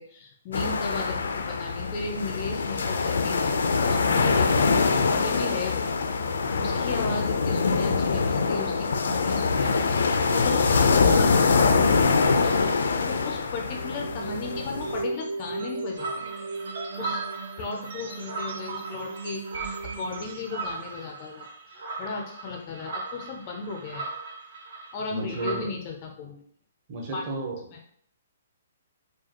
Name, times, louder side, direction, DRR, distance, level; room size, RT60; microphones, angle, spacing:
voice 1, 0.0-4.8 5.1-5.9 6.6-16.3 17.0-17.2 17.6-24.1 24.9-26.4 27.1-27.2 27.7-27.9, left 4 dB, 25° left, 1 dB, 0.4 m, -36 dB
sound 1, 0.5-15.0, left 4 dB, 80° left, 0.4 m, -24 dB
sound 2, 13.7-20.9, right 4 dB, 55° right, 0.5 m, -36 dB
sound 3, 16.0-25.6, right 3 dB, 80° right, 1.5 m, -38 dB
voice 2, 25.1-25.7 26.9-27.6, right 2 dB, 25° right, -1 dB, 0.8 m, -32 dB
4.8 x 2.3 x 2.8 m, 0.64 s
hypercardioid pair, 175°, 0 cm